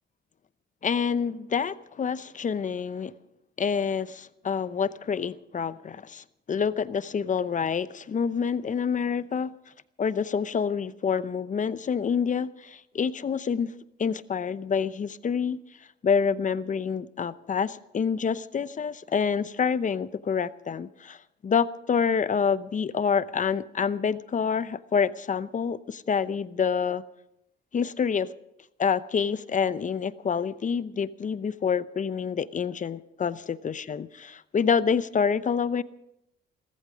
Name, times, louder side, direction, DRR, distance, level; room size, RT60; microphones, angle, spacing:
voice 1, 0.8-3.1 3.6-9.5 10.0-13.7 14.0-15.6 16.0-21.2 21.4-27.0 27.7-28.3 28.8-35.8, left 6 dB, 40° left, 0.8 m, -27 dB
18.5 x 14.0 x 5.1 m
cardioid pair, 90°, 20 cm